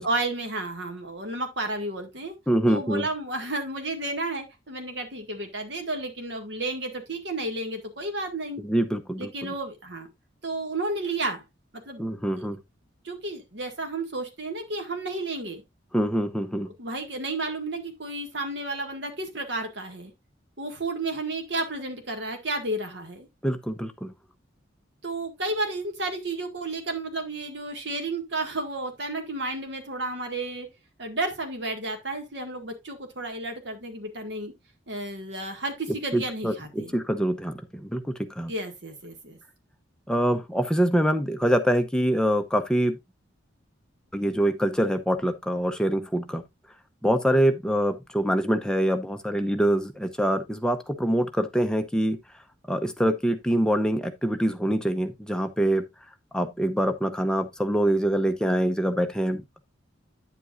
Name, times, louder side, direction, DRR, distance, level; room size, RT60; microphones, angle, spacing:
voice 1, 0.0-2.3 2.7-8.6 9.2-10.1 10.4-11.4 11.9-12.0 12.3-12.5 13.0-15.6 16.7-20.1 20.6-23.3 25.0-30.7 31.0-34.5 34.9-36.9 38.5-39.4, right 2 dB, 60° right, 1.8 m, -32 dB
voice 2, 2.5-3.1 8.6-9.5 12.0-12.6 15.9-16.7 23.4-24.1 36.1-38.5 40.1-43.0 44.1-46.4 47.0-52.2 52.7-55.8 56.3-59.4, right 1 dB, 5° left, 0.7 m, -25 dB
9.5 x 7.6 x 2.5 m
head